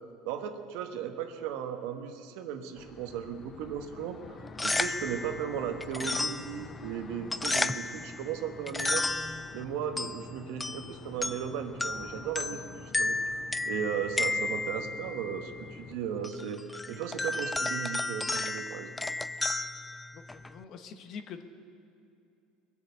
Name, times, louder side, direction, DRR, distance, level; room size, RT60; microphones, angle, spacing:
voice 1, 0.2-9.1 9.5-18.9, right 8 dB, 75° right, 6 dB, 1.3 m, -36 dB
sound 1, 2.7-16.3, left 5 dB, 35° left, 0.7 m, -49 dB
sound 2, 4.4-20.6, left 2 dB, 10° left, 0.3 m, -34 dB
voice 2, 20.1-21.4, left 6 dB, 50° left, 8 dB, 1.1 m, -45 dB
21.5 x 7.3 x 8.2 m, 2.7 s
supercardioid pair, 115°, 0 cm